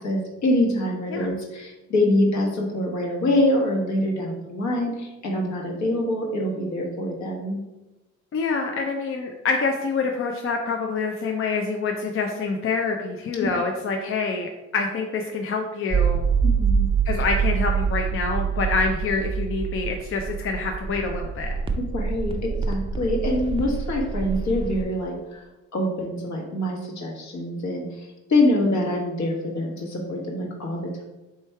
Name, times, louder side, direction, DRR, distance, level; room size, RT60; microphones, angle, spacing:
voice 1, 0.0-7.6 13.4-13.5 16.4-16.9 21.8-25.4 25.7-31.0, left 1 dB, 65° left, 0 dB, 1.2 m, -25 dB
voice 2, 8.3-16.2 17.1-21.5, left 4 dB, 45° left, 2 dB, 0.5 m, -26 dB
sound 1, 15.9-24.8, right 6 dB, 20° right, 0.4 m, -25 dB
3.3 x 3.1 x 4.5 m, 1.0 s
cardioid pair, 90°, 30 cm